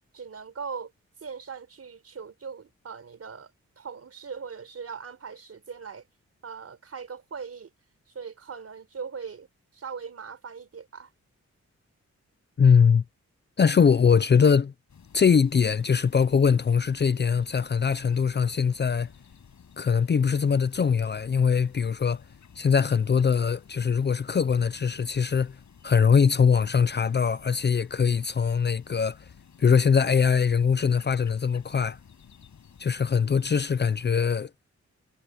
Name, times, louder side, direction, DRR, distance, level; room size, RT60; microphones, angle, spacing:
voice 1, 0.1-0.9 1.2-3.5 3.8-6.1 6.4-7.7 8.1-9.5 9.7-11.1, right 6 dB, 55° right, 4.5 m, -40 dB
voice 2, 12.6-13.0 13.6-14.7 15.1-19.1 19.8-22.2 22.6-25.6 25.8-29.2 29.6-32.0 32.8-34.5, left 6 dB, 35° left, 0.5 m, -22 dB
sound 1, 14.9-34.1, left 7 dB, 75° left, 6.6 m, -53 dB
wide cardioid pair, 180°, 29 cm